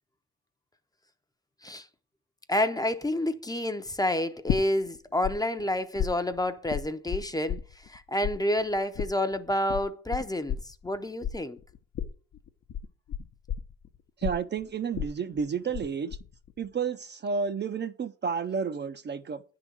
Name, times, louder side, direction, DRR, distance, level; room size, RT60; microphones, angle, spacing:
voice 1, 2.5-11.6, left 1 dB, 15° left, 0.6 m, -29 dB
sound 1, 4.5-5.3 5.6-8.0 8.2-15.9 16.1-16.6, left 9 dB, 60° left, 0.8 m, -33 dB
voice 2, 14.2-16.2 16.6-19.4, right 6 dB, 35° right, 0.5 m, -31 dB
9.9 x 3.9 x 6.0 m
cardioid pair, 90°, 30 cm